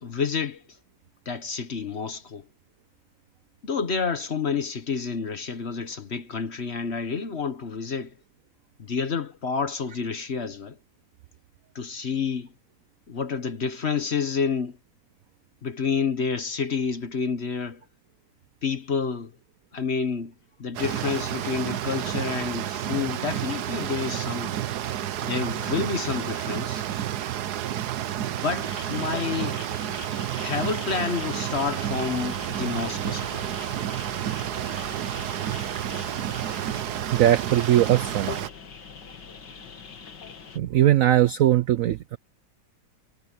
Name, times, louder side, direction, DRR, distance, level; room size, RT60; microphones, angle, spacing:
voice 1, 0.0-0.6 1.3-2.5 3.6-8.2 8.8-10.8 11.7-12.5 13.1-14.8 15.6-17.8 18.6-19.3 19.7-20.3 20.6-24.6 25.2-26.9 28.3-29.6 30.4-33.4, left 5 dB, 40° left, 1.1 m, -29 dB
sound 1, 20.7-38.5, right 11 dB, 65° right, 1.3 m, -30 dB
sound 2, 28.6-40.6, left 6 dB, 70° left, 2.6 m, -42 dB
voice 2, 37.1-38.3 40.5-42.2, right 13 dB, 80° right, 0.7 m, -20 dB
omnidirectional pair, 2.0 m